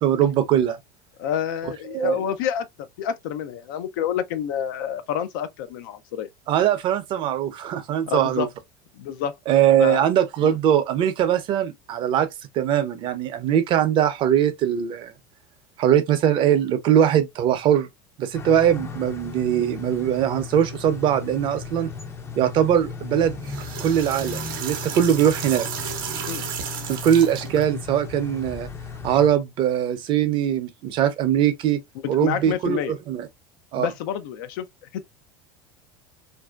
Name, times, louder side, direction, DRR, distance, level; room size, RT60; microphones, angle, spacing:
voice 1, 0.0-0.8 1.9-2.2 6.5-8.5 9.5-12.3 12.5-15.1 15.8-17.9 18.2-21.9 22.4-23.4 23.8-25.7 26.9-28.7 29.0-31.8 32.1-33.3 33.7-33.9, right 10 dB, 50° right, 0.6 m, -21 dB
voice 2, 1.2-2.7 3.0-6.3 8.1-8.5 9.0-9.4 9.8-10.1 10.4-10.6 26.3-26.5 32.0-32.9 33.8-34.7 34.9-35.0, left 9 dB, 75° left, 0.5 m, -28 dB
sound 1, 18.3-29.3, left 5 dB, 25° left, 0.5 m, -36 dB
sound 2, 23.3-27.6, right 7 dB, 85° right, 0.7 m, -33 dB
2.6 x 2.1 x 2.2 m
supercardioid pair, 100°, 11 cm